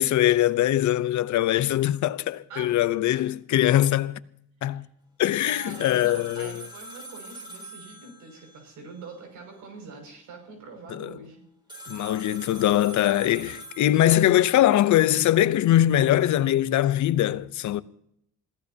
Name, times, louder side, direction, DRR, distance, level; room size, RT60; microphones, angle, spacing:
voice 1, 0.0-4.2 4.6-4.8 5.2-6.6 10.9-11.1 11.9-17.8, left 13 dB, 70° left, 0.8 m, -22 dB
voice 2, 5.4-11.4, right 3 dB, 85° right, 6.4 m, -44 dB
sound 1, 5.7-8.6 11.7-14.6, right 2 dB, 15° right, 5.8 m, -43 dB
26.5 x 16.5 x 2.9 m
cardioid pair, 90°, 30 cm